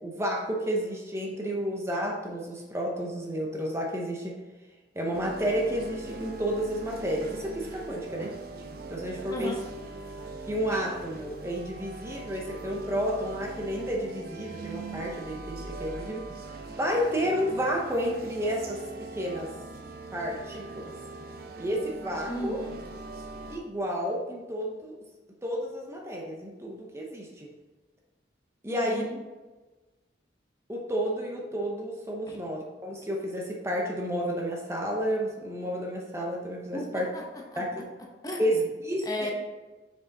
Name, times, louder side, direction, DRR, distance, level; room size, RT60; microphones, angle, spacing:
voice 1, 0.0-4.4 4.9-8.3 8.9-9.6 10.5-16.3 16.8-19.5 20.1-20.9 21.6-22.6 23.5-25.0 25.4-27.5 28.6-29.1 30.7-37.1 37.6-37.9 38.4-39.3, equal, 15° right, 0 dB, 0.8 m, -31 dB
sound 1, 5.1-23.6, right 3 dB, 55° right, 0.7 m, -41 dB
voice 2, 22.3-22.8 28.7-29.2 32.3-32.4 36.7-37.6 38.2-38.5 39.0-39.3, left 1 dB, 20° left, 0 dB, 0.9 m, -35 dB
6.1 x 5.0 x 4.0 m, 1.2 s
head